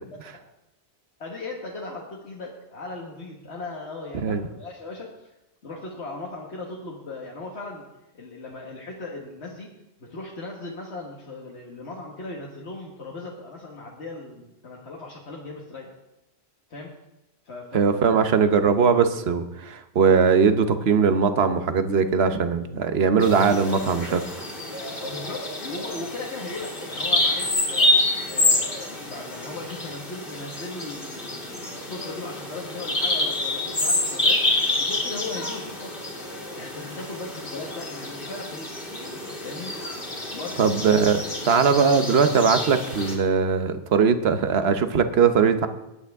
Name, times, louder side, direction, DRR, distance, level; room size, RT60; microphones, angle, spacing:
voice 1, 1.2-5.1 5.6-7.9 8.1-9.7 10.0-15.9 16.7-16.9 17.4-18.0 24.9-27.9 28.3-36.0 36.5-38.7 39.4-39.8 40.3-40.7, left 3 dB, 80° left, -2 dB, 1.8 m, -38 dB
voice 2, 17.7-24.2 40.6-45.7, right 6 dB, 70° right, 9 dB, 1.1 m, -20 dB
Bird vocalization bird call bird song, 23.2-43.2, left 2 dB, 55° left, 2.9 m, -27 dB
19.5 x 9.3 x 3.6 m, 0.95 s
omnidirectional pair, 1.1 m